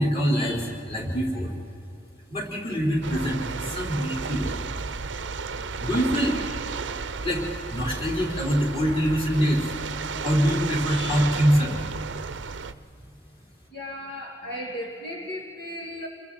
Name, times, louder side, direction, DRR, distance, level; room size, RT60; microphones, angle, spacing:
voice 1, 0.0-1.5 2.3-4.6 5.8-6.4 7.2-9.6 10.2-11.8, equal, 30° left, -3 dB, 4.4 m, -24 dB
sound 1, 3.0-12.7, right 5 dB, 65° right, 0.7 m, -33 dB
voice 2, 13.7-16.1, left 1 dB, 60° left, -2 dB, 2.3 m, -35 dB
29.5 x 22.5 x 4.3 m, 2.8 s
head